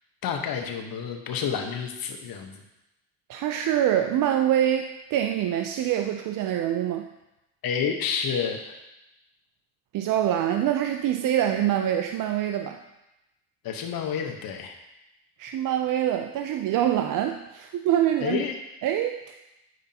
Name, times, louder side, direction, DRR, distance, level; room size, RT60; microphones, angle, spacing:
voice 1, 0.2-2.6 7.6-8.7 13.6-14.8 18.2-18.6, left 7 dB, 60° left, 4 dB, 1.1 m, -29 dB
voice 2, 3.3-7.1 9.9-12.8 15.4-18.4 18.8-19.4, right 11 dB, 55° right, 6 dB, 0.5 m, -25 dB
9.2 x 5.1 x 2.8 m, 0.94 s
supercardioid pair, 80°, 40 cm